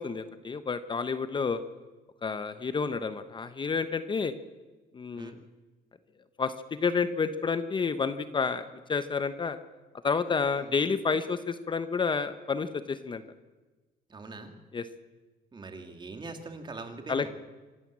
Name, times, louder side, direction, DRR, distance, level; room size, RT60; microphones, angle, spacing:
voice 1, 0.0-1.6 2.2-4.3 4.9-5.3 6.4-6.5 6.8-9.6 10.0-13.2 14.7-14.8 17.1-17.3, left 5 dB, 30° left, 11 dB, 0.9 m, -30 dB
voice 2, 14.1-14.5 15.5-17.3, right 3 dB, 25° right, 6 dB, 2.5 m, -42 dB
26.0 x 12.5 x 8.7 m, 1.2 s
cardioid pair, 110°, 17 cm